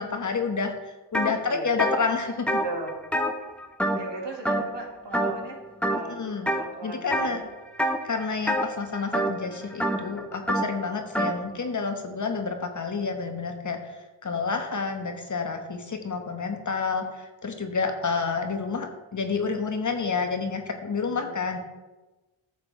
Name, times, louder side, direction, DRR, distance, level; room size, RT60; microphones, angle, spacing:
voice 1, 0.0-2.6 6.1-6.5 6.8-7.4 8.0-21.6, left 5 dB, 40° left, 5 dB, 1.2 m, -29 dB
sound 1, 1.1-1.3 1.7-4.2 4.5-4.8 5.1-5.5 5.8-6.6 7.1-7.4 7.8-11.4, equal, 5° left, 0.8 m, -27 dB
voice 2, 1.3-1.7 2.6-2.9 4.0-5.6 5.9-6.2 6.4-7.5 14.3-14.6 21.0-21.4, right 3 dB, 65° right, 0 dB, 2.1 m, -37 dB
9.6 x 6.7 x 3.5 m, 1.1 s
cardioid pair, 65°, 45 cm